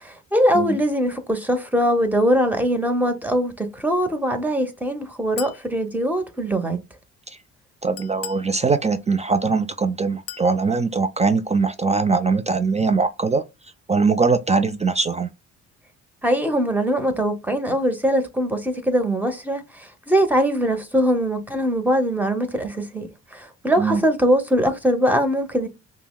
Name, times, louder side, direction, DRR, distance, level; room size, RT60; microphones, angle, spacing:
voice 1, 0.0-6.8 16.2-25.7, equal, 5° right, 0.9 m, -22 dB
Chink clink, 5.4-5.7 8.0-8.5 10.3-10.5, left 10 dB, 55° left, 0.6 m, -35 dB
voice 2, 7.8-13.4 13.9-15.3 23.8-24.0, right 4 dB, 25° right, 0.3 m, -21 dB
5.4 x 2.1 x 2.3 m
cardioid pair, 90°, 30 cm